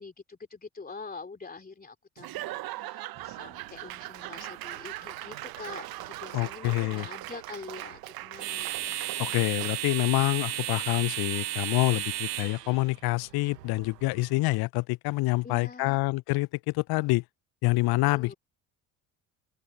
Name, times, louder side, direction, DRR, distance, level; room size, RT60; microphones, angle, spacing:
voice 1, 0.0-9.1 15.4-16.0 18.1-18.3, left 4 dB, 20° left, 3.2 m, -45 dB
Laughter / Applause / Crowd, 2.2-9.9, right 16 dB, 50° right, 1.4 m, -40 dB
sound 1, 3.2-14.6, right 13 dB, 85° right, 0.6 m, -37 dB
voice 2, 6.3-7.1 9.2-17.2 17.6-18.3, left 22 dB, 50° left, 0.9 m, -27 dB
figure-of-eight pair, 55°, 47 cm